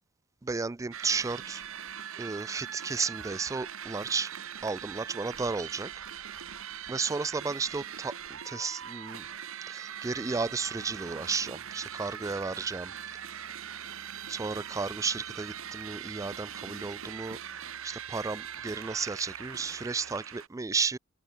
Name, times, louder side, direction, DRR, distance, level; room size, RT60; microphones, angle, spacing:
voice 1, 0.4-1.6 2.2-4.3 4.6-5.9 6.3-6.4 6.9-9.3 9.7-12.9 14.3-17.4 17.8-21.0, right 4 dB, 15° right, 0.3 m, -33 dB
sound 1, 0.9-20.5, right 9 dB, 60° right, 1.6 m, -41 dB
sound 2, 10.2-20.2, left 1 dB, 85° left, 3.3 m, -64 dB
open air
head